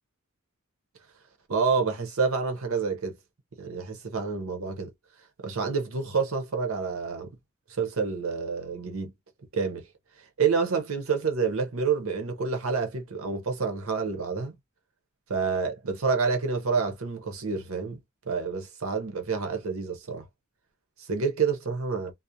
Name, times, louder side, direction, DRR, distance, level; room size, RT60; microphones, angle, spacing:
voice 1, 1.5-3.2 3.6-4.9 5.4-7.3 7.7-9.1 9.5-9.9 10.4-14.5 15.3-18.0 18.3-20.2 21.0-22.1, right 5 dB, 75° right, 0.7 m, -28 dB
2.4 x 2.0 x 2.6 m
head